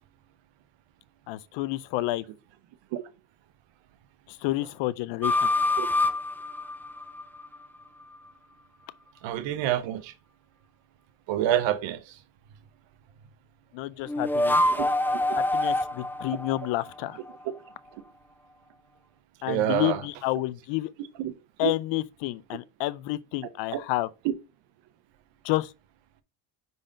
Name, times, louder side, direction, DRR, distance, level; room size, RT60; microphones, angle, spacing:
voice 1, 1.3-2.2 4.3-5.5 13.7-14.6 15.4-17.2 19.4-20.9 21.6-24.1 25.4-25.7, left 17 dB, 75° left, 0.6 m, -29 dB
sound 1, 5.2-7.6 14.1-17.4, left 2 dB, 5° left, 0.6 m, -26 dB
voice 2, 9.2-10.1 11.3-12.2 14.7-14.8 19.5-20.0 21.2-21.3 21.6-21.7 23.7-23.8, right 12 dB, 75° right, 1.0 m, -27 dB
5.0 x 4.1 x 5.3 m
supercardioid pair, 85°, 45 cm